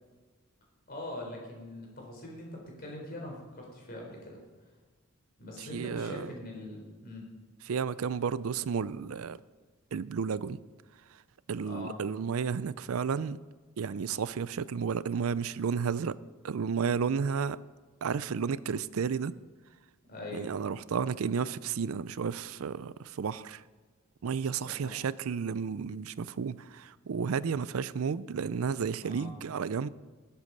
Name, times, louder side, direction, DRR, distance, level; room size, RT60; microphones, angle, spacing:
voice 1, 0.9-4.4 5.4-7.3 11.6-12.0 20.0-20.5 24.6-24.9 29.0-29.3, left 1 dB, 45° left, -1 dB, 4.2 m, -42 dB
voice 2, 5.6-6.3 7.7-9.4 9.9-10.6 11.5-13.4 13.8-16.2 16.4-17.6 18.0-19.3 20.3-23.6 24.2-29.9, right 6 dB, 80° right, 18 dB, 0.4 m, -32 dB
20.0 x 8.1 x 5.4 m, 1.4 s
head